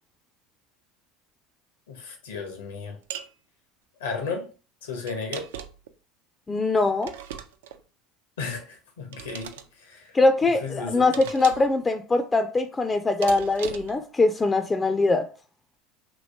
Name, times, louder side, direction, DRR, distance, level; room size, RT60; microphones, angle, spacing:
voice 1, 1.9-3.0 4.0-4.5 4.8-5.4 8.4-9.5 9.8-10.1 10.6-11.0, left 4 dB, 90° left, 0.9 m, -34 dB
sound 1, 3.1-3.3 5.1-5.9 7.0-7.8 9.1-9.7 11.1-11.8 13.2-14.0, right 9 dB, 85° right, 0.3 m, -38 dB
voice 2, 6.5-7.1 10.1-15.2, left 3 dB, 20° left, 0.3 m, -22 dB
3.1 x 2.9 x 2.7 m
hypercardioid pair, 90°, 0 cm